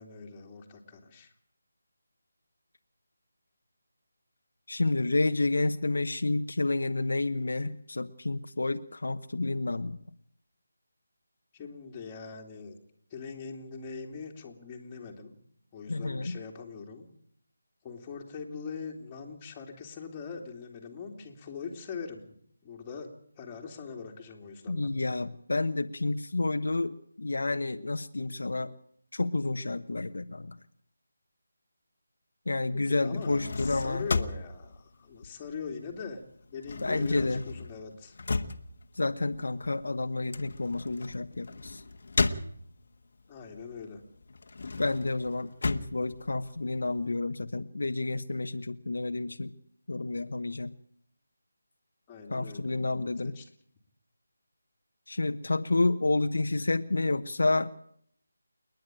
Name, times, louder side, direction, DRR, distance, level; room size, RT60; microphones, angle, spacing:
voice 1, 0.0-1.3 11.5-12.8 13.1-15.4 15.7-17.1 17.8-22.2 22.6-24.9 32.7-36.2 36.5-38.2 43.3-44.0 52.1-52.7 53.2-53.5, left 5 dB, 20° left, 0 dB, 2.8 m, -42 dB
voice 2, 4.7-10.0 15.9-16.4 24.7-28.7 29.1-30.6 32.5-34.1 36.8-37.4 38.9-41.8 44.8-49.5 49.9-50.7 52.3-53.4 55.1-57.7, left 2 dB, 75° left, 8 dB, 1.1 m, -30 dB
sound 1, 33.1-35.9 36.2-43.0 43.5-47.0, left 3 dB, 55° left, 1.4 m, -35 dB
28.5 x 10.5 x 9.1 m, 0.67 s
figure-of-eight pair, 165°, 0 cm